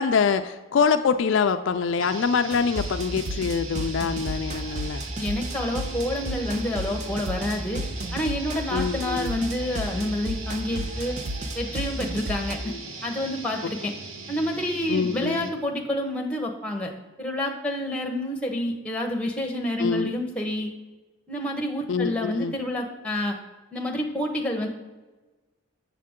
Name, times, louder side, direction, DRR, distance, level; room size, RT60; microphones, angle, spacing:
voice 1, 0.0-5.0 8.7-9.3 12.7-12.8 14.9-15.5 19.8-20.1 21.9-22.5, left 5 dB, 60° left, 8 dB, 0.3 m, -25 dB
sound 1, 2.0-15.7, right 3 dB, 70° right, 0.9 m, -40 dB
sound 2, 2.5-12.5, right 1 dB, 35° right, 0.5 m, -32 dB
voice 2, 5.2-7.8 8.1-11.2 11.5-12.7 13.0-13.9 14.3-16.9 17.2-20.7 21.3-23.4 23.7-24.7, left 1 dB, 5° left, 1 dB, 0.9 m, -28 dB
7.5 x 7.0 x 3.6 m, 1.2 s
head